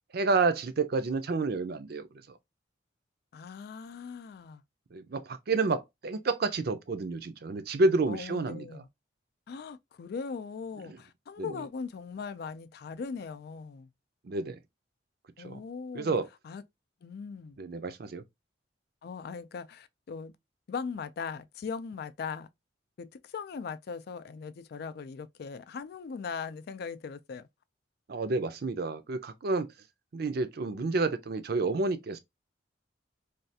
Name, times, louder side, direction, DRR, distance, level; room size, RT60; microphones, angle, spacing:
voice 1, 0.1-2.1 4.9-8.8 10.9-11.0 11.4-11.6 14.2-14.6 15.4-15.6 15.9-16.3 17.6-18.2 28.1-29.7 30.1-32.2, right 3 dB, 55° right, 0.5 m, -29 dB
voice 2, 3.3-4.6 8.1-8.9 9.5-13.9 15.4-16.2 16.4-16.6 17.0-17.6 19.0-20.3 20.7-22.5 23.0-27.5, left 5 dB, 55° left, 0.3 m, -39 dB
3.2 x 2.3 x 2.7 m
head